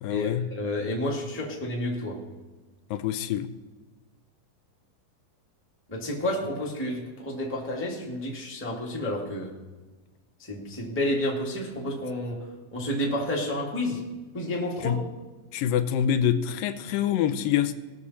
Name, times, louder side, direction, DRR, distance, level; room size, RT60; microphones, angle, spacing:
voice 1, 0.0-0.4 2.9-3.5 14.8-15.0 15.5-17.8, left 9 dB, 85° left, 10 dB, 2.3 m, -25 dB
voice 2, 0.5-2.2 5.9-9.5 10.5-12.4 12.7-14.1 14.3-15.0, left 1 dB, 5° left, -2 dB, 1.0 m, -30 dB
19.5 x 6.7 x 4.2 m, 1.2 s
omnidirectional pair, 4.0 m